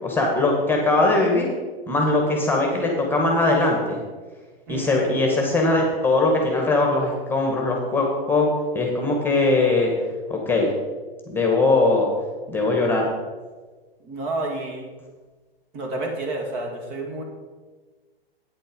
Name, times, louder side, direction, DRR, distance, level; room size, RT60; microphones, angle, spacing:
voice 1, 0.0-1.5 1.9-4.0 4.7-9.9 10.3-10.7 11.3-12.1 12.5-13.1, left 2 dB, 5° left, 0 dB, 1.8 m, -21 dB
voice 2, 4.7-5.3 14.0-14.9 15.7-17.2, right 2 dB, 45° right, 1 dB, 2.5 m, -30 dB
9.2 x 7.6 x 5.4 m, 1.3 s
hypercardioid pair, 115°, 31 cm